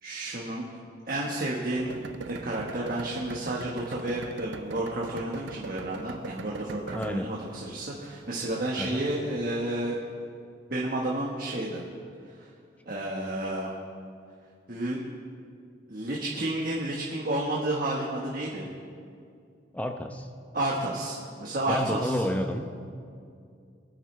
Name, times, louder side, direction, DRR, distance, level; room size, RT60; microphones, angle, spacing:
voice 1, 0.0-0.6 1.1-2.0 2.3-10.0 10.7-11.8 12.4-12.5 12.9-13.7 14.7-15.0 15.9-18.7 20.5-22.2, right 1 dB, 50° right, -4 dB, 1.3 m, -31 dB
sound 1, 1.8-8.7, right 4 dB, 80° right, 0.5 m, -41 dB
voice 2, 6.9-7.4 8.7-9.0 19.7-20.3 21.7-22.6, left 1 dB, 10° left, 5 dB, 0.7 m, -30 dB
23.0 x 9.3 x 3.3 m, 2.3 s
head